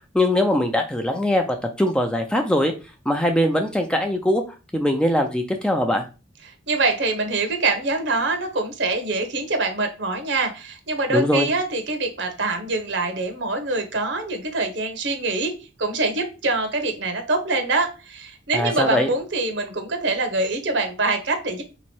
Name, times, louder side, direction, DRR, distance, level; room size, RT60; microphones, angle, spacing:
voice 1, 0.1-1.4 1.8-2.7 3.1-4.4 4.7-6.0 11.1-11.5 18.5-19.1, left 1 dB, 5° left, 4 dB, 0.4 m, -21 dB
voice 2, 6.7-21.6, right 3 dB, 65° right, 6 dB, 1.0 m, -24 dB
3.6 x 3.1 x 4.4 m, 0.32 s
head